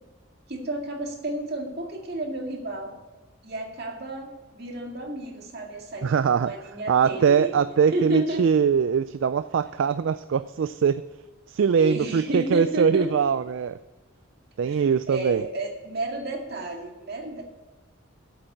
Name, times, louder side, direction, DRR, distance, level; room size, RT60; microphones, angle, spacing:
voice 1, 0.5-2.9 3.4-7.5 7.9-8.4 11.8-13.1 14.7-14.8 15.1-17.4, right 1 dB, 50° right, 1 dB, 2.1 m, -31 dB
voice 2, 6.0-6.5 6.9-11.0 11.5-13.8 14.6-15.5, right 7 dB, 70° right, 13 dB, 0.3 m, -22 dB
8.4 x 7.9 x 7.9 m, 1.2 s
head